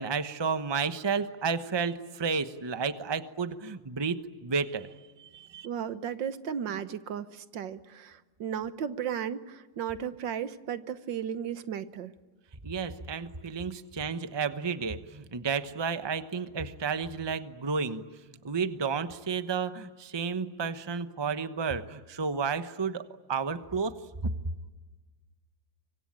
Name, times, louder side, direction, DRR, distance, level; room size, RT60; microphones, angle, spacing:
voice 1, 0.0-4.9 5.2-5.7 12.6-18.0 18.4-23.9 24.2-24.3, right 5 dB, 20° right, 11 dB, 0.8 m, -32 dB
voice 2, 5.6-12.2, right 8 dB, 80° right, 13 dB, 1.8 m, -35 dB
25.0 x 24.5 x 9.0 m, 1.3 s
omnidirectional pair, 2.0 m